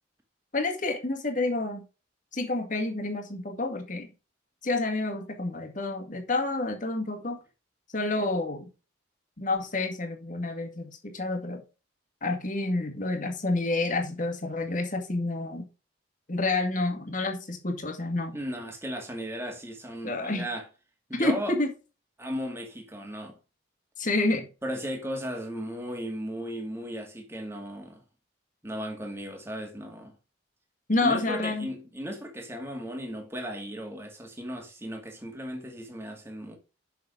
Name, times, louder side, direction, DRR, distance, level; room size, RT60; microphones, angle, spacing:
voice 1, 0.5-1.9 2.3-4.1 4.6-7.4 7.9-8.7 9.4-11.6 12.2-15.6 16.3-18.4 20.0-20.5 21.1-21.7 24.0-24.5 30.9-31.7, left 2 dB, 45° left, 2.1 m, -29 dB
voice 2, 18.3-20.6 21.1-21.6 22.2-23.4 24.6-28.0 28.6-30.1 31.0-36.6, equal, 15° right, 2.2 m, -36 dB
6.9 x 6.6 x 5.0 m
head